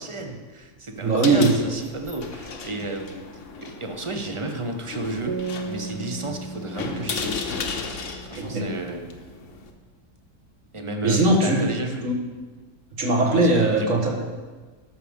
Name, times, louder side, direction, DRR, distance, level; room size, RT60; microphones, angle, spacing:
voice 1, 0.0-3.3 3.6-7.4 8.2-9.1 10.7-12.1 13.2-13.9, right 2 dB, 25° right, 5 dB, 0.7 m, -32 dB
sound 1, 1.0-9.7, left 4 dB, 55° left, 1.2 m, -35 dB
voice 2, 1.0-1.6 8.4-8.7 11.0-11.7 12.0-12.2 13.0-14.3, right 2 dB, 55° right, -1 dB, 1.9 m, -20 dB
sound 2, 5.3-8.7, right 4 dB, 80° right, 1.4 m, -35 dB
12.5 x 6.3 x 5.3 m, 1.4 s
omnidirectional pair, 1.6 m